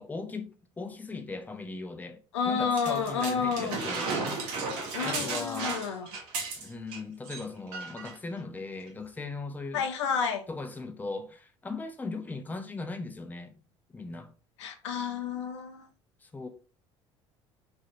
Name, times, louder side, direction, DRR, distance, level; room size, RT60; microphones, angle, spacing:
voice 1, 0.0-4.1 5.0-5.8 6.6-9.8 10.5-13.6 13.9-14.3 16.2-16.5, left 3 dB, 10° left, 0.5 m, -38 dB
voice 2, 2.3-3.8 4.9-6.1 9.7-10.4 14.6-15.9, left 6 dB, 85° left, 0.5 m, -30 dB
sound 1, 2.8-7.0 7.2-7.4 7.7-8.1 8.9-9.0, right 4 dB, 65° right, 1.0 m, -34 dB
3.1 x 2.6 x 2.4 m
hypercardioid pair, 70°, 15 cm